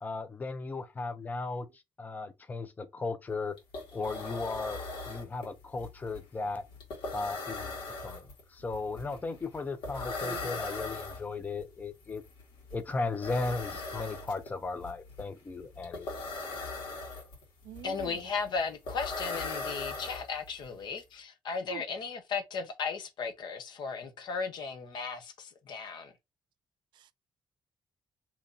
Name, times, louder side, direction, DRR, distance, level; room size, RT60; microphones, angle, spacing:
voice 1, 0.0-1.7 2.0-3.5 3.9-4.8 5.0-6.6 7.1-8.2 8.5-12.2 12.7-16.1, left 3 dB, 20° left, 0.5 m, -36 dB
sound 1, 3.3-3.4 3.6-20.7, left 3 dB, 80° left, 1.6 m, -40 dB
voice 2, 10.2-10.6 17.6-18.2 21.7-21.8 26.9-27.1, right 9 dB, 70° right, 0.4 m, -45 dB
voice 3, 17.8-26.1, left 5 dB, 65° left, 0.9 m, -36 dB
2.9 x 2.6 x 3.7 m
cardioid pair, 150°, 8 cm